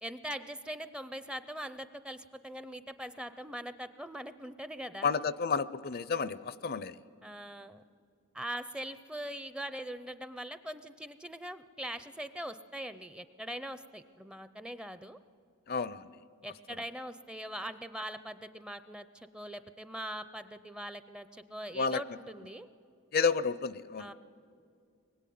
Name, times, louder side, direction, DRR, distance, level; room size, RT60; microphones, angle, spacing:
voice 1, 0.0-5.1 7.2-7.8 8.3-15.2 16.4-22.7 24.0-24.1, right 1 dB, 5° right, 12 dB, 0.5 m, -42 dB
voice 2, 5.0-7.0 15.7-16.1 21.7-22.0 23.1-24.1, left 5 dB, 45° left, 16 dB, 0.5 m, -31 dB
24.0 x 21.0 x 9.4 m, 2.4 s
head